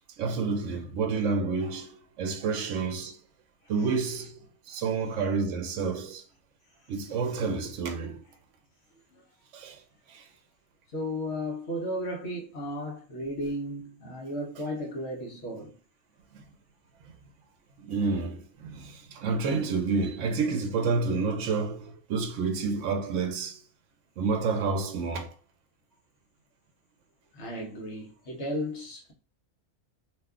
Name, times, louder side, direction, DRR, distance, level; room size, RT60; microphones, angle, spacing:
voice 1, 0.2-3.2 3.7-6.2 6.9-8.2 9.5-9.8 10.1-10.2 17.8-23.6 24.2-25.3, right 4 dB, 70° right, 0.9 m, -29 dB
voice 2, 10.9-15.8 27.3-29.1, equal, 55° left, 1.1 m, -34 dB
2.8 x 2.2 x 3.5 m
omnidirectional pair, 1.4 m